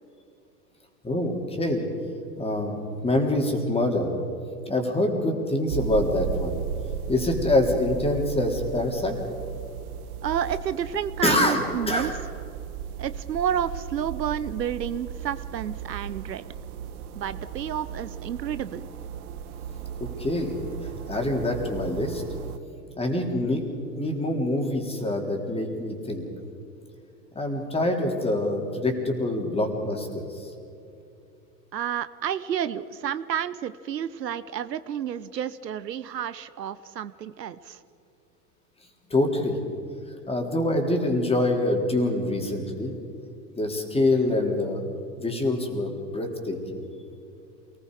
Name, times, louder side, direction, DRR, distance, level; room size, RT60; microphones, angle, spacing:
voice 1, 1.0-1.8 2.4-4.1 4.7-6.6 7.1-9.2 11.2-12.1 20.0-20.6 21.1-22.2 23.0-23.6 24.0-26.2 27.4-30.5 39.1-39.6 40.3-42.9 43.5-44.8 45.2-46.8, left 1 dB, 10° left, 2 dB, 3.5 m, -25 dB
sound 1, 5.7-22.6, right 8 dB, 60° right, 1.4 m, -36 dB
voice 2, 10.2-12.1 13.0-16.4 17.1-18.9 31.7-37.8, right 9 dB, 80° right, 14 dB, 0.9 m, -30 dB
28.0 x 19.5 x 4.9 m, 2.7 s
hypercardioid pair, 95°, 49 cm